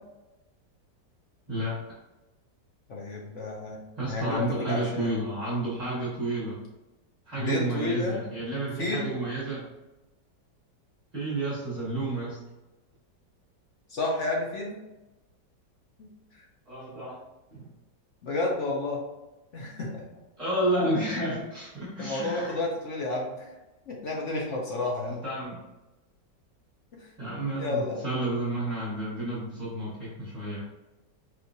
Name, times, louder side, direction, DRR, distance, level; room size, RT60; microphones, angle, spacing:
voice 1, 1.5-1.8 4.0-6.6 7.2-9.6 11.1-12.4 16.7-17.2 17.5-17.7 20.4-22.6 25.1-25.6 27.2-30.6, right 1 dB, 25° right, -8 dB, 1.2 m, -31 dB
voice 2, 2.9-3.8 4.1-5.1 7.4-8.3 8.8-9.2 13.9-14.8 16.0-16.1 18.2-19.0 19.5-20.0 22.0-23.5 23.9-25.2 26.9-28.0, left 2 dB, 60° left, -2 dB, 0.8 m, -31 dB
4.6 x 3.3 x 2.7 m, 1.0 s
omnidirectional pair, 1.9 m